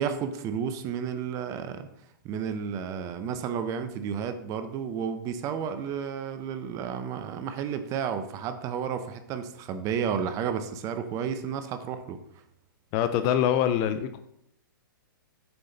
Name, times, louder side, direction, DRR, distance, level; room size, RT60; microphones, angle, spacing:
voice 1, 0.0-1.8 2.2-12.2, right 7 dB, 30° right, 9 dB, 0.7 m, -32 dB
voice 2, 12.9-14.2, left 10 dB, 35° left, 10 dB, 0.4 m, -24 dB
6.8 x 5.6 x 4.0 m, 0.76 s
hypercardioid pair, 125°, 11 cm